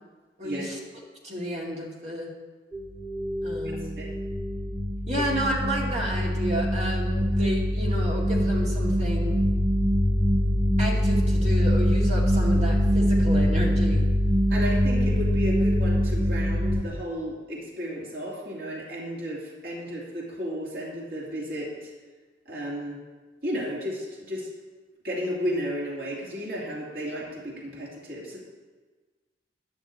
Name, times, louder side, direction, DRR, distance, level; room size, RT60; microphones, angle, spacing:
voice 1, 0.4-0.8 1.2-2.3 3.4-3.9 5.1-9.4 10.8-14.0, right 1 dB, 40° right, -3 dB, 2.5 m, -31 dB
sound 1, 2.7-16.8, equal, 10° right, 1.0 m, -23 dB
voice 2, 3.6-4.1 5.2-5.3 14.5-21.9 22.5-23.0 23.4-24.5 25.0-28.4, equal, 55° right, -4 dB, 2.7 m, -33 dB
11.5 x 6.4 x 8.4 m, 1.3 s
head